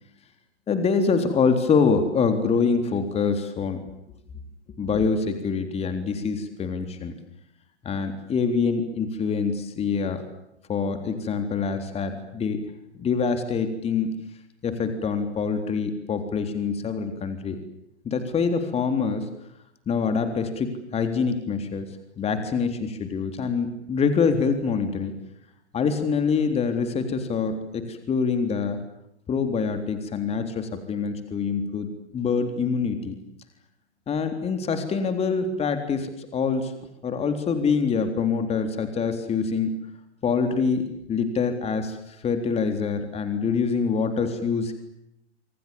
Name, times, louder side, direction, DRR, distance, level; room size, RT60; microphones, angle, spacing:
voice 1, 0.7-3.8 4.8-7.1 7.8-10.2 10.7-12.6 12.9-14.1 14.6-17.6 18.0-19.3 19.9-21.9 22.2-25.1 25.7-28.8 29.3-33.1 34.1-36.7 37.0-39.8 40.2-44.7, left 5 dB, 20° left, 8 dB, 3.7 m, -25 dB
28.0 x 26.5 x 7.2 m, 0.79 s
hypercardioid pair, 120°, 34 cm